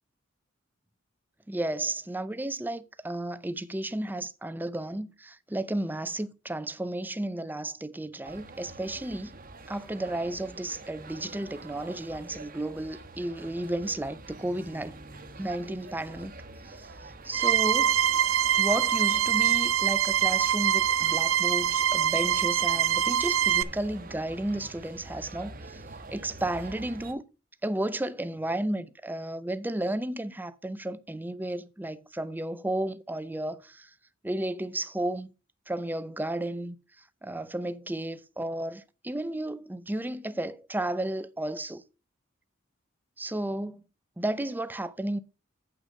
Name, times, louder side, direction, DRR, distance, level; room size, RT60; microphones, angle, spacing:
voice 1, 1.5-9.4 9.7-15.0 15.4-16.3 16.6-18.0 18.6-25.8 26.1-27.2 27.6-33.9 34.2-35.3 35.7-36.8 37.2-41.8 43.2-43.8 44.2-45.2, right 1 dB, 10° right, 0.5 m, -33 dB
sound 1, 8.2-27.1, right 2 dB, 45° right, 1.1 m, -46 dB
sound 2, 17.3-23.6, right 10 dB, 85° right, 0.5 m, -24 dB
8.1 x 6.2 x 5.2 m
head